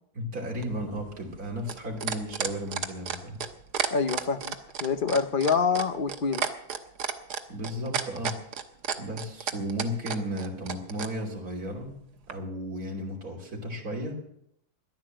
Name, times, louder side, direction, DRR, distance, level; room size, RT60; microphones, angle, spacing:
voice 1, 0.1-3.4 7.5-8.4 9.0-12.0 12.3-14.2, equal, 65° right, 0 dB, 3.5 m, -34 dB
sound 1, 0.6-11.1 12.3-12.4, right 7 dB, 90° right, 1.7 m, -31 dB
voice 2, 3.9-6.5, left 5 dB, 45° left, 10 dB, 0.8 m, -26 dB
14.5 x 11.0 x 7.6 m, 0.74 s
omnidirectional pair, 1.7 m